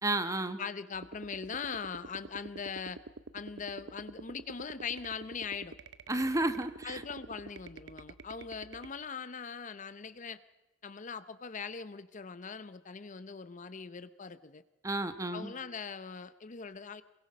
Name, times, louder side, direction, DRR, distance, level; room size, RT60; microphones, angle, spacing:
voice 1, 0.0-0.6 6.1-7.0 14.8-15.5, right 2 dB, 20° right, 10 dB, 1.1 m, -32 dB
voice 2, 0.6-3.0 3.3-5.8 6.8-10.4 10.8-14.6 15.3-17.0, left 5 dB, 45° left, 13 dB, 0.7 m, -41 dB
sound 1, 0.9-8.9, right 3 dB, 65° right, 0.7 m, -48 dB
27.0 x 22.0 x 5.2 m, 1.1 s
head